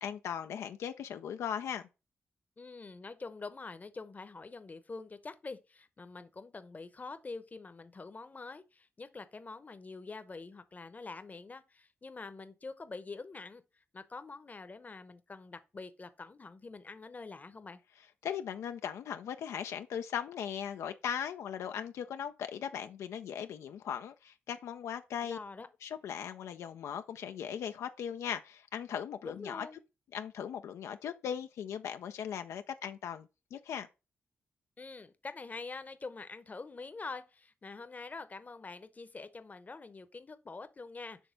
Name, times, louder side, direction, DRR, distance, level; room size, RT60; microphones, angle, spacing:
voice 1, 0.0-1.8 18.2-25.4 25.8-29.7 30.1-33.9, left 8 dB, 90° left, 0.4 m, -38 dB
voice 2, 2.6-17.8 25.2-25.7 29.2-29.8 34.8-41.2, left 3 dB, 35° left, 0.7 m, -45 dB
6.2 x 3.3 x 5.2 m
cardioid pair, 65°, 5 cm